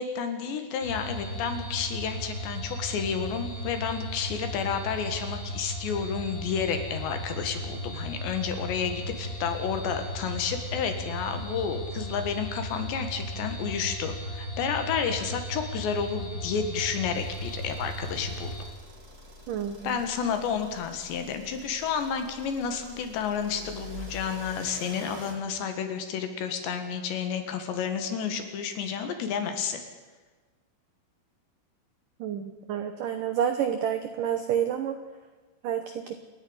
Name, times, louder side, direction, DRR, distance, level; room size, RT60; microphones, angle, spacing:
voice 1, 0.0-18.5 19.8-29.8, left 7 dB, 70° left, 7 dB, 3.9 m, -31 dB
sound 1, 0.8-18.7, equal, 30° left, 2.7 m, -36 dB
sound 2, 17.1-25.3, equal, 25° right, 3.1 m, -46 dB
voice 2, 19.5-20.0 32.2-35.0 35.6-36.2, right 9 dB, 80° right, 8 dB, 1.9 m, -29 dB
28.5 x 10.0 x 9.7 m, 1.3 s
omnidirectional pair, 5.4 m